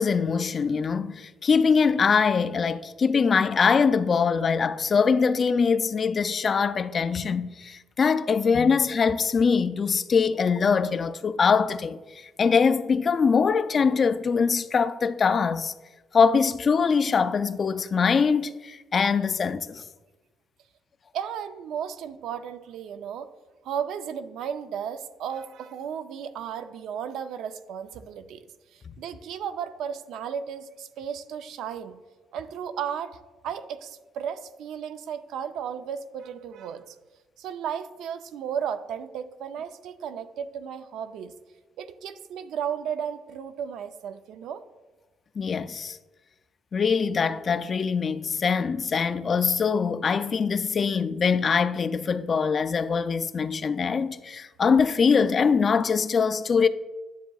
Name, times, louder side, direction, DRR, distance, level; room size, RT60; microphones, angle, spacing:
voice 1, 0.0-12.0 12.4-15.7 16.1-19.8 45.4-46.0 46.7-56.7, left 5 dB, 35° left, 0.3 m, -23 dB
voice 2, 21.1-23.3 23.6-28.4 28.7-31.9 32.3-37.0 37.4-41.3 41.8-44.6, right 8 dB, 85° right, 0.5 m, -34 dB
10.5 x 7.3 x 2.3 m
cardioid pair, 140°, 0 cm